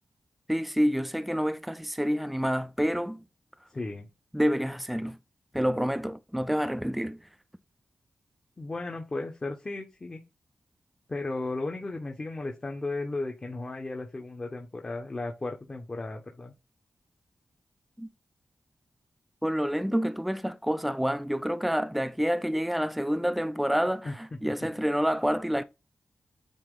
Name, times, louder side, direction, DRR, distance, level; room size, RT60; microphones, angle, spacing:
voice 1, 0.5-3.2 4.3-5.2 5.5-7.2 18.0-18.1 19.4-25.6, equal, 5° right, 0.5 m, -28 dB
voice 2, 3.7-4.1 8.6-10.2 11.1-16.5 24.0-24.1 24.4-24.5, left 2 dB, 35° left, 1.2 m, -35 dB
8.7 x 2.9 x 3.9 m
wide cardioid pair, 80°, 3 cm